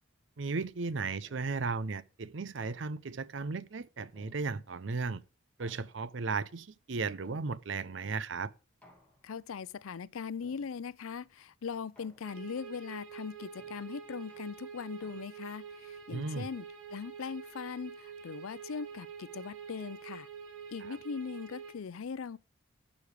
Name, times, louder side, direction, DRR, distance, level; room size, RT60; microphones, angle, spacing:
voice 1, 0.4-5.2 5.6-8.5 16.1-16.5 20.8-21.0, right 4 dB, 60° right, 0.6 m, -35 dB
sound 1, 2.6-3.3 4.2-4.9 5.6-6.4 7.2-8.0 8.8-9.5 10.4-11.1 12.0-12.7 13.6-15.6, left 1 dB, 5° left, 2.2 m, -63 dB
voice 2, 9.2-20.3 20.7-22.4, left 6 dB, 85° left, 0.5 m, -40 dB
sound 2, 12.2-21.7, right 6 dB, 85° right, 2.1 m, -47 dB
11.5 x 5.3 x 6.4 m
head